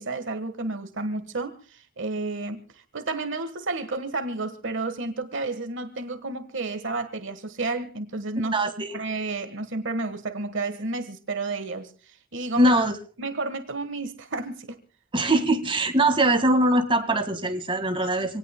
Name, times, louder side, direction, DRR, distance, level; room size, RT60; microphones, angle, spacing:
voice 1, 0.0-8.6 8.9-12.8 13.2-14.8, right 3 dB, 60° right, 1.4 m, -31 dB
voice 2, 8.5-9.0 12.6-12.9 15.1-18.4, right 1 dB, 25° right, 1.8 m, -22 dB
27.0 x 18.0 x 2.2 m
head